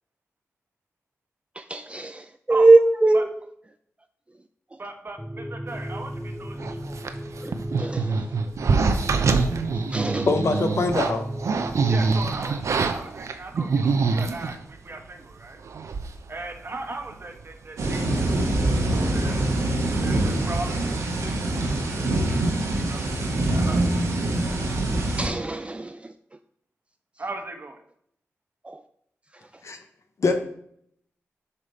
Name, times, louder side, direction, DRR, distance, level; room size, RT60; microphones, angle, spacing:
voice 1, 1.6-3.3 7.4-7.5 7.8-8.2 9.9-10.3 25.2-25.9 28.7-28.8, right 2 dB, 20° right, 8 dB, 0.4 m, -21 dB
voice 2, 4.8-7.0 11.9-15.6 16.3-18.3 18.8-19.4 20.0-21.1 22.7-23.0 23.5-23.9 27.2-27.8, right 2 dB, 45° right, 4 dB, 1.0 m, -37 dB
sound 1, 5.2-12.0, equal, 5° left, 0.8 m, -35 dB
sound 2, 6.6-14.6 15.3-15.4 15.6-16.3 16.5-16.6 17.1-17.4 17.8-21.3 21.5-21.8, right 4 dB, 75° right, 0.5 m, -26 dB
voice 3, 10.3-11.3 29.6-29.8 30.2-30.4, left 3 dB, 65° left, 7 dB, 0.8 m, -23 dB
sound 3, 17.8-25.3, right 1 dB, 90° right, 1.2 m, -24 dB
6.8 x 3.4 x 4.2 m, 0.69 s
cardioid pair, 45°, 5 cm